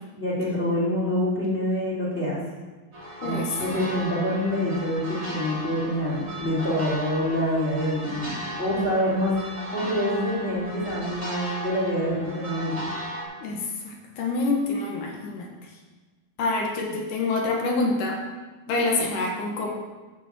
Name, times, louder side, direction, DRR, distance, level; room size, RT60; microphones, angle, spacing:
voice 1, 0.1-2.4 3.2-12.9, equal, 20° left, -6 dB, 2.9 m, -26 dB
sound 1, 2.9-13.2, right 1 dB, 25° right, 3.6 m, -36 dB
voice 2, 3.2-3.6 13.4-15.5 16.4-18.2 18.7-19.7, left 3 dB, 65° left, 0 dB, 2.7 m, -26 dB
9.4 x 7.0 x 7.5 m, 1.3 s
omnidirectional pair, 4.3 m